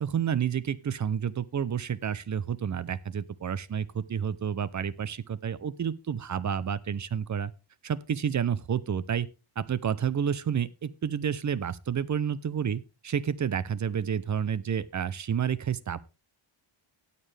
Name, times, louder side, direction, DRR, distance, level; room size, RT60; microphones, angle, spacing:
voice 1, 0.0-7.5 7.8-9.3 9.6-16.0, right 8 dB, 35° right, 18 dB, 0.6 m, -30 dB
18.0 x 6.7 x 3.3 m, 0.28 s
wide cardioid pair, 145°, 50 cm